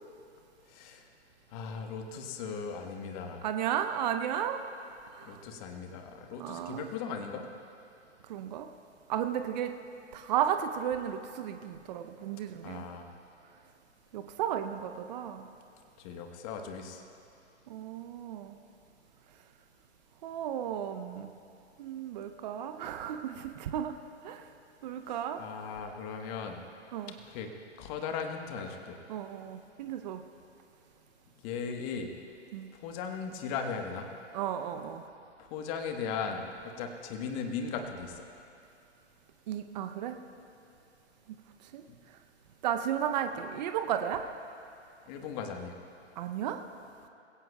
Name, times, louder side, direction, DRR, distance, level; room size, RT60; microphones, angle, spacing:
voice 1, 0.7-1.0 1.5-3.5 5.2-7.5 12.6-13.1 16.0-17.0 25.4-26.6 27.3-27.5 27.8-29.0 31.4-32.1 32.7-34.1 35.5-38.2 45.1-45.8, left 6 dB, 30° left, 4 dB, 1.3 m, -37 dB
voice 2, 3.4-4.6 5.1-5.4 6.4-6.9 8.3-8.7 9.1-9.7 10.1-12.9 14.1-15.5 17.7-18.6 20.2-21.3 21.8-24.0 24.2-24.4 24.8-25.4 26.9-27.1 29.1-30.2 32.5-32.7 34.3-35.0 39.5-40.2 41.7-41.8 42.6-44.2 46.2-46.6, right 9 dB, 40° right, 7 dB, 0.7 m, -34 dB
21.0 x 17.0 x 2.3 m, 2.6 s
hypercardioid pair, 130°, 36 cm